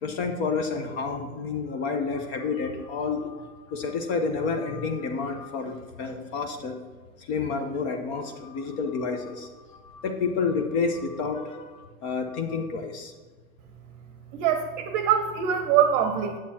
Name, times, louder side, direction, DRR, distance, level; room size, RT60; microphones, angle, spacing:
voice 1, 0.0-6.8 7.2-13.1, left 4 dB, 45° left, 4 dB, 0.9 m, -30 dB
voice 2, 14.3-16.4, right 9 dB, 35° right, 7 dB, 0.7 m, -23 dB
8.4 x 7.6 x 2.8 m, 1.4 s
hypercardioid pair, 125°, 44 cm